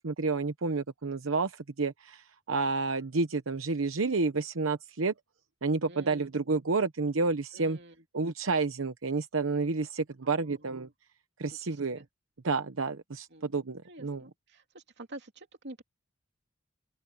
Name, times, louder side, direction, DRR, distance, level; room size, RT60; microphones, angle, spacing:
voice 1, 0.0-5.1 5.6-7.8 8.1-10.9 11.4-12.0 12.4-14.2, right 3 dB, 85° right, 0.9 m, -30 dB
voice 2, 5.9-6.3 7.5-8.0 10.2-10.9 11.7-12.1 13.3-15.8, right 1 dB, 60° right, 2.9 m, -49 dB
open air
head